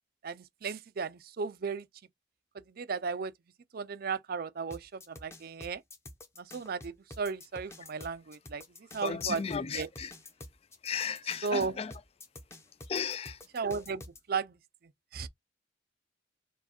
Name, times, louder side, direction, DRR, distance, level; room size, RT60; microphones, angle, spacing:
voice 1, 0.2-1.9 2.8-3.3 3.7-5.8 6.4-8.6 8.9-9.9 11.4-11.7 13.5-14.0 14.3-14.5 15.1-15.3, right 5 dB, 55° right, 0.5 m, -35 dB
sound 1, 4.7-14.2, left 1 dB, 15° left, 0.7 m, -49 dB
voice 2, 9.0-10.1 10.8-11.9 12.9-13.4, left 6 dB, 35° left, 0.3 m, -35 dB
4.6 x 2.3 x 4.3 m
head